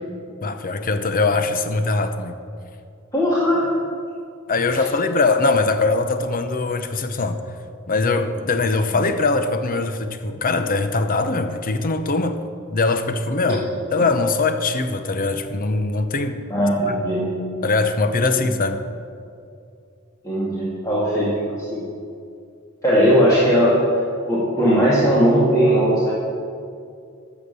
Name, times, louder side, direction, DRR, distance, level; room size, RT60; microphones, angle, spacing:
voice 1, 0.4-2.3 4.5-7.4 7.9-12.4 12.7-16.4 16.9-17.0 17.6-18.8, left 3 dB, 40° left, 0.8 m, -21 dB
voice 2, 3.1-3.7 4.7-4.8 8.9-9.0 16.5-17.3 18.3-18.4 20.2-21.3 21.6-21.9 22.8-23.7 24.3-26.1, equal, 15° left, 2.2 m, -18 dB
13.0 x 7.3 x 6.9 m
head